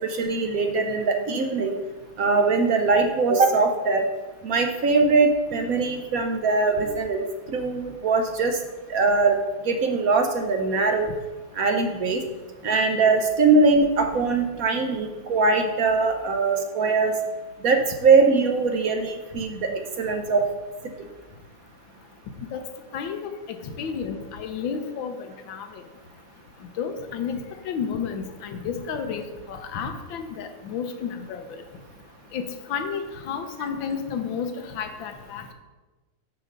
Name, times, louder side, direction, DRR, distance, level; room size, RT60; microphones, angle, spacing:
voice 1, 0.0-1.8 2.2-4.0 4.4-8.6 8.9-9.4 9.6-11.1 11.6-12.2 12.6-17.1 17.6-20.4, right 4 dB, 70° right, 5 dB, 0.8 m, -21 dB
voice 2, 22.9-23.3 23.6-25.8 26.8-27.4 27.6-31.4 32.3-32.4 32.7-35.5, left 6 dB, 70° left, 7 dB, 1.4 m, -31 dB
7.4 x 5.2 x 6.4 m, 1.2 s
omnidirectional pair, 2.3 m